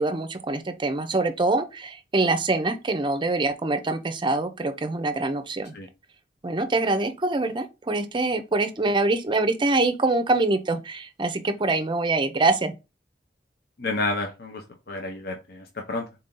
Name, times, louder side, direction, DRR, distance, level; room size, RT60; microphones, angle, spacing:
voice 1, 0.0-5.7 6.4-12.7, right 2 dB, 30° right, 0.5 m, -24 dB
voice 2, 13.8-14.6 14.9-16.0, left 2 dB, 60° left, 0.7 m, -30 dB
4.0 x 2.7 x 3.7 m
head